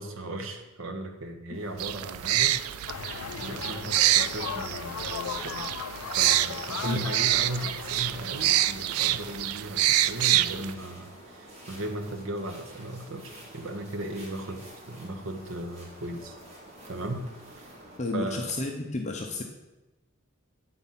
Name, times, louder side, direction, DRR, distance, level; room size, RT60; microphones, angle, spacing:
voice 1, 0.0-2.6 3.3-5.7 6.2-16.3 16.9-17.3 17.5-17.7 18.1-18.6, right 1 dB, 70° right, 5 dB, 0.9 m, -37 dB
sound 1, 1.5-18.0, right 1 dB, 30° right, 1.8 m, -49 dB
sound 2, 1.8-10.7, right 14 dB, 90° right, 0.3 m, -27 dB
sound 3, 2.9-9.7, left 8 dB, 85° left, 0.3 m, -38 dB
voice 2, 18.0-19.4, left 2 dB, 35° left, 2 dB, 0.6 m, -31 dB
8.9 x 4.0 x 5.6 m, 1.0 s
head